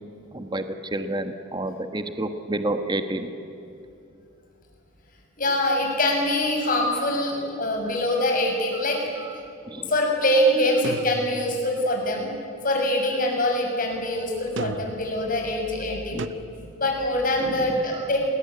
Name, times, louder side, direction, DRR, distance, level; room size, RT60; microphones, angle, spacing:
voice 1, 0.3-3.3 8.7-9.9 16.1-16.2 17.6-18.1, right 1 dB, 20° right, 8 dB, 1.3 m, -30 dB
voice 2, 5.4-9.0 9.7-12.3 12.6-16.2 16.7-18.2, left 1 dB, 45° left, 1 dB, 6.8 m, -24 dB
sound 1, 10.8-11.8 14.6-15.2 16.2-16.3, right 3 dB, 65° right, 0.9 m, -33 dB
29.0 x 21.0 x 9.6 m, 2.7 s
head